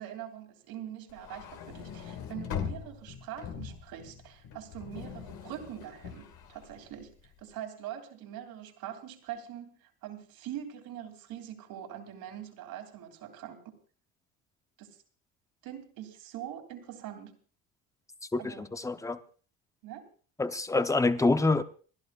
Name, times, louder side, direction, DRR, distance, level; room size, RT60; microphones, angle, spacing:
voice 1, 0.0-13.6 14.8-15.0 15.6-17.3 18.4-18.7 19.8-20.0, right 10 dB, 65° right, 3.3 m, -43 dB
sound 1, 1.1-7.4, left 7 dB, 65° left, 2.4 m, -41 dB
voice 2, 18.3-19.2 20.4-21.6, left 3 dB, 10° left, 0.9 m, -26 dB
29.0 x 11.5 x 2.5 m
supercardioid pair, 95°, 40 cm